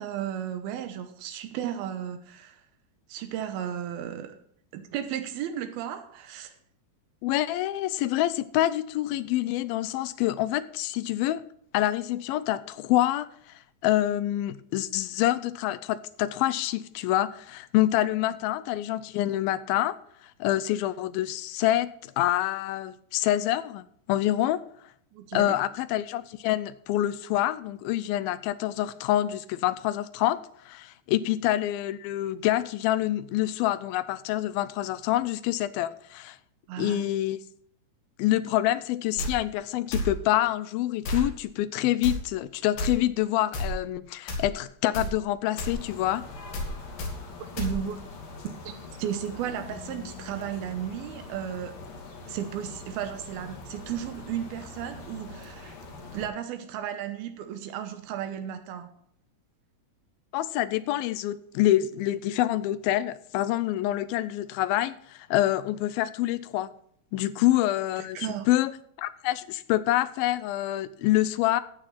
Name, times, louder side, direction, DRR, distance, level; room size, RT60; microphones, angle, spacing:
voice 1, 0.0-2.6 3.1-4.4 4.7-6.5 25.1-25.6 36.7-37.1 47.6-48.0 48.6-48.7 49.0-51.7 52.3-55.7 56.1-58.9 68.1-68.5, right 10 dB, 85° right, 2.9 m, -34 dB
voice 2, 7.2-11.4 11.7-20.0 20.4-24.6 25.3-36.4 36.8-37.4 38.2-46.3 60.3-66.7 67.1-68.2 68.5-68.7 69.0-71.6, left 14 dB, 85° left, 2.4 m, -26 dB
sound 1, 39.2-39.3 39.9-40.1 41.0-41.3 42.0-42.2 42.8-42.9 43.5-43.7 44.3-44.5 44.9-45.1 45.6-45.8 46.5-46.7 47.0-47.1 47.6-47.7, left 1 dB, 70° left, 3.9 m, -30 dB
sound 2, 45.5-56.3, left 3 dB, 50° left, 2.9 m, -43 dB
13.5 x 9.0 x 4.1 m
omnidirectional pair, 4.2 m